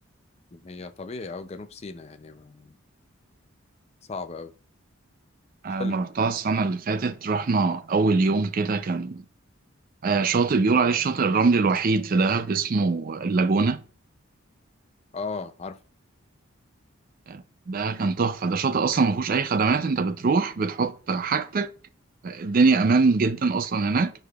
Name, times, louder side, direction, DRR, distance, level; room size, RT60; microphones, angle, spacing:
voice 1, 0.5-2.8 4.1-4.5 5.8-6.0 15.1-15.8, left 4 dB, 30° left, 0.4 m, -36 dB
voice 2, 5.6-9.2 10.0-13.8 17.3-17.4 17.7-21.7 22.2-24.1, right 4 dB, 40° right, 0.4 m, -23 dB
9.0 x 4.9 x 2.3 m
head